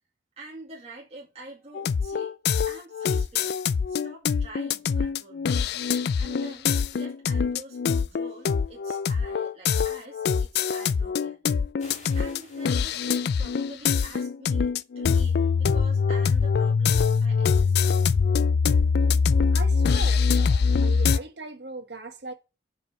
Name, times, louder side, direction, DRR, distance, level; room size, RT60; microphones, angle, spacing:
voice 1, 0.4-2.4 2.7-3.6 3.9-5.6 6.2-11.4 12.1-14.7 15.0-18.0, right 2 dB, 35° right, 2.2 m, -46 dB
sound 1, 1.7-21.2, left 5 dB, 55° left, 0.3 m, -23 dB
sound 2, 11.8-13.8, left 3 dB, 35° left, 2.5 m, -51 dB
voice 2, 19.5-22.3, right 3 dB, 60° right, 1.5 m, -39 dB
8.0 x 4.9 x 5.9 m
head